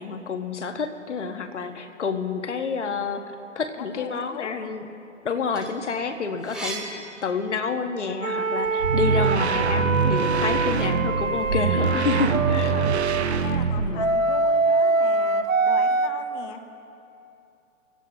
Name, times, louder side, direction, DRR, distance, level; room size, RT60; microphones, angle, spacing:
voice 1, 0.0-3.2 3.5-4.8 5.2-12.7 13.8-14.0, left 5 dB, 60° left, 7 dB, 1.5 m, -29 dB
voice 2, 3.8-4.7 5.4-5.5 12.5-13.0 13.3-16.6, left 8 dB, 20° left, 7 dB, 0.9 m, -39 dB
sound 1, 5.5-8.0 8.4-9.8, right 2 dB, ahead, 0.5 m, -39 dB
sound 2, 8.2-13.3 14.0-16.1, right 3 dB, 90° right, 0.9 m, -24 dB
sound 3, 8.7-14.2, right 5 dB, 55° right, 1.0 m, -24 dB
26.0 x 16.0 x 2.9 m, 2.7 s
figure-of-eight pair, 125°, 39 cm